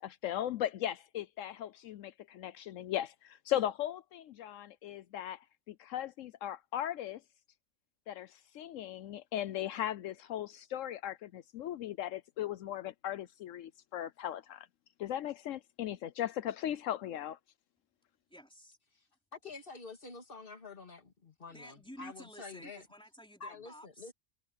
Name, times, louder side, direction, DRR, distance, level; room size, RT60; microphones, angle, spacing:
voice 1, 0.0-7.2 8.1-14.7 15.0-17.4, left 11 dB, 80° left, 1.0 m, -38 dB
voice 2, 18.3-18.8 21.4-24.1, equal, 5° left, 3.7 m, -52 dB
voice 3, 19.3-22.8 23.4-24.1, left 4 dB, 45° left, 2.3 m, -48 dB
omnidirectional pair, 1.3 m